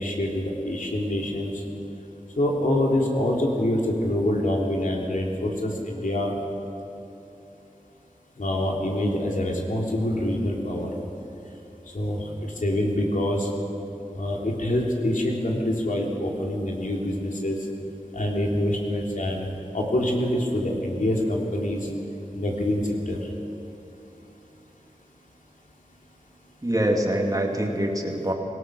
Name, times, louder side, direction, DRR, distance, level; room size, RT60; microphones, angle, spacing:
voice 1, 0.0-1.5 2.4-6.3 8.4-10.9 11.9-13.5 14.1-17.6 18.1-19.5 19.7-21.8 22.3-23.2, left 1 dB, 75° left, -1 dB, 3.3 m, -25 dB
voice 2, 26.6-28.3, right 1 dB, 25° right, 1 dB, 2.5 m, -24 dB
26.0 x 18.0 x 6.3 m, 2.9 s
wide cardioid pair, 70°, 14 cm